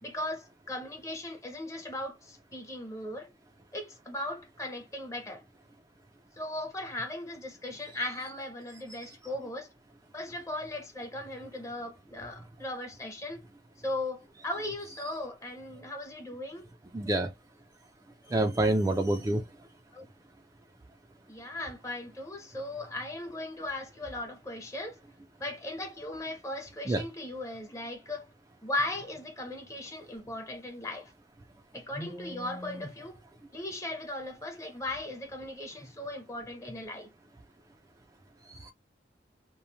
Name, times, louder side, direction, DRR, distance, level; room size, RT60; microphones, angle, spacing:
voice 1, 0.0-3.3 3.7-5.4 6.4-9.7 10.1-13.4 13.8-16.7 19.9-20.1 21.3-25.0 25.4-28.3 28.6-31.1 31.7-33.2 33.5-37.1, left 1 dB, 15° left, 0.7 m, -37 dB
voice 2, 16.9-17.3 18.3-19.4 26.9-27.0 38.5-38.7, right 1 dB, 20° right, 0.3 m, -27 dB
3.0 x 2.0 x 2.6 m
head